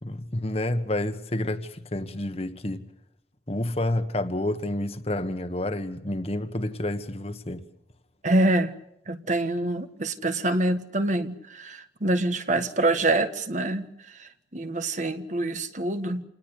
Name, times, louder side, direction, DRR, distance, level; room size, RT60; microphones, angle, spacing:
voice 1, 0.0-2.9 3.5-7.6, left 1 dB, 35° left, 1.5 m, -29 dB
voice 2, 8.2-8.7 9.1-13.9 14.2-16.3, right 2 dB, 45° right, 1.5 m, -26 dB
28.5 x 19.5 x 8.4 m
head